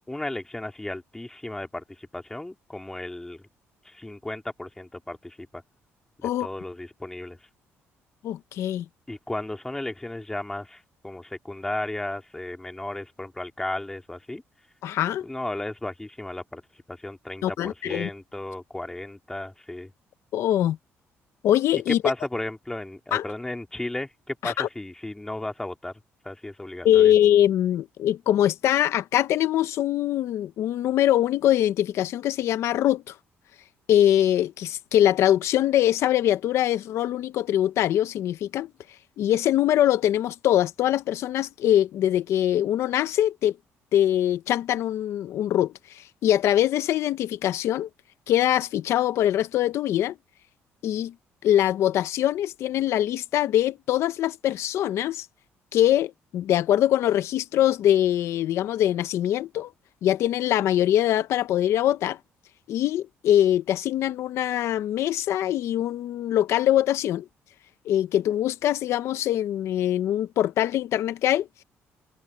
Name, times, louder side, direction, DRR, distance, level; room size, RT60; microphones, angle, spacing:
voice 1, 0.1-3.4 3.8-5.6 6.2-7.4 9.1-14.4 15.2-16.6 16.9-19.9 22.0-25.9 26.2-27.1, left 1 dB, 10° left, 2.8 m, -34 dB
voice 2, 8.2-8.9 14.8-15.3 17.4-18.1 20.3-20.8 21.4-22.0 23.1-23.2 24.4-24.7 26.8-33.1 33.9-38.7 39.2-43.6 43.9-47.9 48.3-50.1 50.8-51.1 51.4-55.3 55.7-59.7 60.0-62.2 62.7-67.2 67.8-71.5, left 12 dB, 75° left, 1.0 m, -23 dB
cardioid pair, 115°, 5 cm